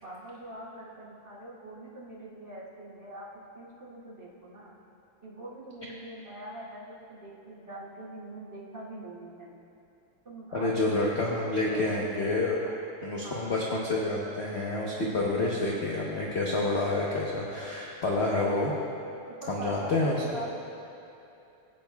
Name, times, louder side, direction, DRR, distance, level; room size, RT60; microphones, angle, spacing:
voice 1, 0.0-3.3 3.5-4.7 5.2-9.6 10.2-10.7 11.5-11.9 13.2-13.5 19.4-19.9 20.2-20.5, right 1 dB, 35° right, -10 dB, 3.0 m, -43 dB
voice 2, 10.5-12.6 13.0-18.7 19.5-20.2, left 2 dB, 45° left, -4 dB, 0.9 m, -28 dB
18.0 x 8.8 x 2.3 m, 2.8 s
omnidirectional pair, 2.1 m